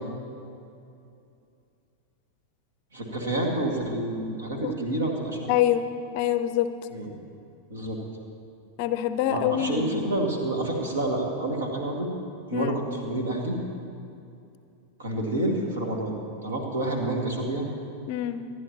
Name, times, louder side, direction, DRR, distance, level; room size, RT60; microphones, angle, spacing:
voice 1, 2.9-5.5 6.9-7.1 7.7-8.0 9.3-12.1 12.5-13.6 15.0-16.2 16.4-17.6, right 1 dB, 65° right, 1 dB, 2.3 m, -28 dB
voice 2, 5.5-5.9 6.1-6.7 8.8-10.1 12.5-12.8 18.1-18.4, left 11 dB, 45° left, 11 dB, 0.5 m, -25 dB
26.5 x 10.5 x 3.0 m, 2.5 s
figure-of-eight pair, 90°, 0 cm